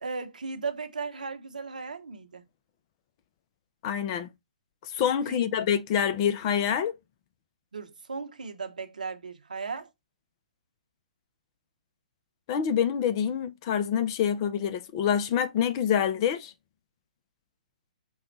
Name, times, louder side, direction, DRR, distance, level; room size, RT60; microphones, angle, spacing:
voice 1, 0.0-2.4 5.3-5.5 7.7-9.9, right 4 dB, 80° right, 0.9 m, -36 dB
voice 2, 3.8-4.3 4.9-7.0 12.5-16.5, left 8 dB, 40° left, 0.6 m, -26 dB
5.4 x 2.4 x 3.9 m
hypercardioid pair, 130°, 4 cm